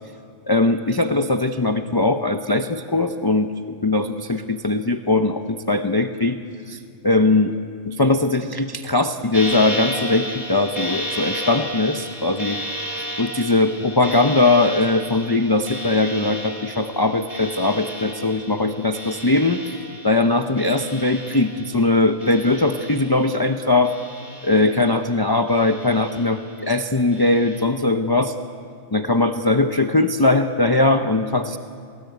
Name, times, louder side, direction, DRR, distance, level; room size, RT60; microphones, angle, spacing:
voice 1, 0.4-3.5 3.8-6.4 6.7-7.5 7.9-12.6 13.2-19.6 20.0-23.9 24.4-28.3 28.9-31.6, left 2 dB, 20° left, 6 dB, 0.8 m, -20 dB
sound 1, 9.3-21.9 22.2-23.4 23.8-25.1 25.5-26.5 27.1-27.6, equal, 30° right, 4.3 m, -33 dB
29.0 x 20.5 x 9.4 m, 2.3 s
omnidirectional pair, 1.3 m